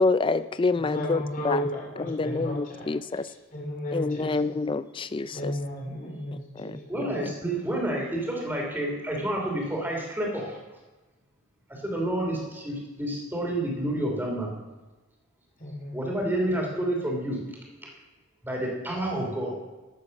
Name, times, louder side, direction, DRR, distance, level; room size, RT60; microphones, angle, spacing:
voice 1, 0.0-1.6 2.1-3.2 3.9-5.5 6.6-6.7 7.2-7.3, left 3 dB, 25° left, 14 dB, 0.4 m, -27 dB
voice 2, 0.7-3.2 3.5-4.5 5.3-7.1 15.6-16.1, equal, 40° left, -1 dB, 2.6 m, -34 dB
voice 3, 6.9-10.6 11.7-14.5 15.9-17.4 18.4-19.5, right 1 dB, 10° right, -1 dB, 2.8 m, -29 dB
13.0 x 8.0 x 5.2 m, 1.2 s
head